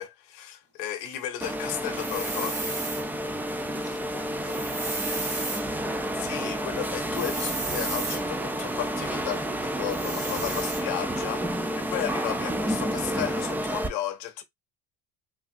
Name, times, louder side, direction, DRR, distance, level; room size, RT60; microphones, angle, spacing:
voice 1, 0.0-2.8 6.1-14.4, left 12 dB, 75° left, 0.8 m, -34 dB
sound 1, 1.4-13.9, right 1 dB, 5° right, 0.4 m, -30 dB
sound 2, 2.0-3.0 4.4-5.6 7.1-8.2 9.9-10.8, right 3 dB, 40° right, 1.6 m, -34 dB
voice 2, 3.7-5.7, left 3 dB, 10° left, 0.9 m, -46 dB
3.3 x 2.3 x 2.6 m
supercardioid pair, 100°, 30 cm